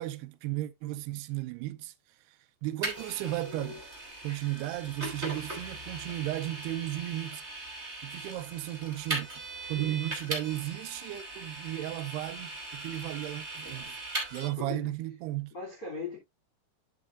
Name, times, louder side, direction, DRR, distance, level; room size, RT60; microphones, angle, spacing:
voice 1, 0.0-1.9 2.3-2.4 2.6-3.8 4.2-7.4 8.0-14.0 14.3-15.5, right 15 dB, 80° right, 2.4 m, -35 dB
Vehicle, 2.8-14.5, right 2 dB, 20° right, 2.8 m, -39 dB
voice 2, 14.5-14.9 15.5-16.2, left 4 dB, 25° left, 3.0 m, -39 dB
12.0 x 5.9 x 2.5 m
omnidirectional pair, 5.0 m